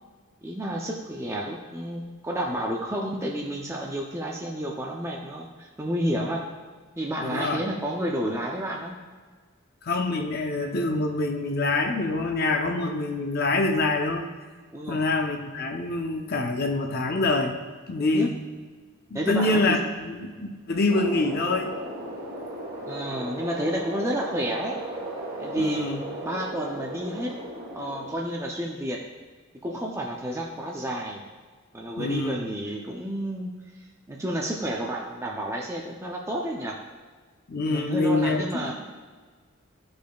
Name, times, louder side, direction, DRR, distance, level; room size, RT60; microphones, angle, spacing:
voice 1, 0.4-6.5 7.0-9.0 14.7-15.0 18.1-18.3 19.1-19.8 22.9-24.8 25.4-25.9 26.2-27.3 27.7-29.1 29.6-31.2 31.7-33.5 34.1-36.8 37.7-38.9, right 1 dB, 15° right, -1 dB, 0.5 m, -30 dB
voice 2, 7.2-7.6 9.8-14.3 14.9-17.6 17.9-18.4 19.1-21.7 25.6-26.0 32.0-32.4 37.5-38.7, left 2 dB, 45° left, 3 dB, 0.6 m, -26 dB
sound 1, 20.9-28.1, right 1 dB, 45° right, 1.3 m, -36 dB
13.0 x 5.2 x 2.3 m, 1.5 s
head